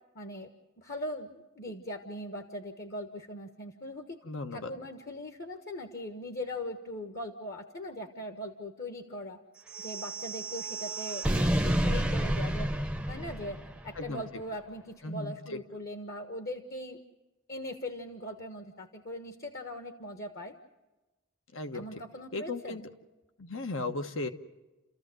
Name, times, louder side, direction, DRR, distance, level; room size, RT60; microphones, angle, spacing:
voice 1, 0.1-0.5 0.8-4.2 4.5-9.4 9.8-11.3 11.6-12.7 13.1-17.0 17.5-20.5 21.7-22.9, left 1 dB, 50° left, 6 dB, 1.4 m, -40 dB
voice 2, 4.2-4.7 14.0-14.2 15.0-15.6 21.5-21.8 22.3-22.8 23.4-24.3, left 2 dB, 75° left, 8 dB, 1.3 m, -36 dB
sound 1, 9.7-14.0, right 1 dB, 5° right, 0.7 m, -30 dB
30.0 x 14.5 x 7.7 m, 1.1 s
head